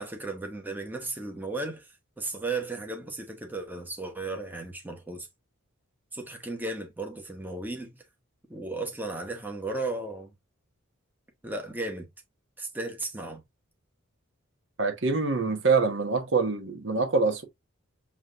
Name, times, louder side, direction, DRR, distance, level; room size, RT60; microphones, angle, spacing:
voice 1, 0.0-5.3 6.1-8.0 8.5-10.3 11.4-12.1 12.6-13.4, right 2 dB, 10° right, 1.0 m, -35 dB
voice 2, 14.8-17.4, right 4 dB, 60° right, 1.0 m, -25 dB
7.2 x 2.9 x 2.4 m
head